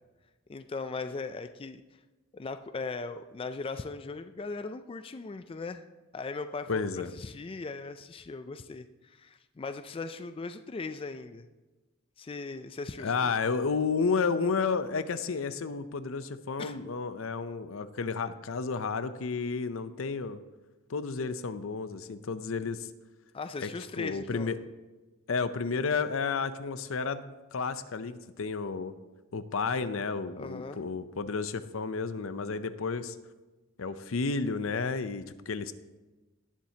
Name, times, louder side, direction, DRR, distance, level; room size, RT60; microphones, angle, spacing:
voice 1, 0.5-1.8 2.3-5.8 6.1-11.5 12.2-13.3 16.6-16.8 23.3-24.5 30.4-30.8, left 3 dB, 25° left, 9 dB, 0.3 m, -39 dB
voice 2, 6.7-7.1 13.0-20.4 20.9-22.9 23.6-23.7 24.0-24.6 25.3-28.9 29.3-33.2 33.8-35.7, left 4 dB, 75° left, 12 dB, 0.6 m, -31 dB
18.0 x 7.4 x 2.8 m, 1.2 s
head